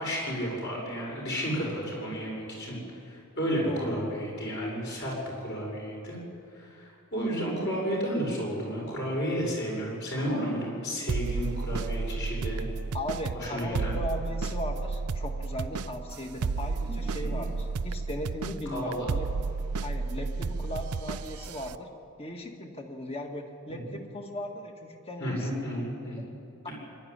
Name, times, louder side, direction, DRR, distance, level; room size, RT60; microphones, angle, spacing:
voice 1, 0.0-2.7 3.0-6.2 6.5-12.6 13.3-13.9 17.0-17.3 18.6-19.1 23.7-23.9 25.2-26.3 26.7-26.8, equal, 50° left, -3 dB, 6.9 m, -32 dB
voice 2, 3.6-4.1 12.9-19.5 19.8-21.9 22.2-25.5 26.0-26.1, left 1 dB, 25° left, 3 dB, 1.8 m, -37 dB
sound 1, 11.1-21.8, right 4 dB, 90° right, 0.5 m, -32 dB
24.0 x 12.0 x 10.0 m, 2.6 s
head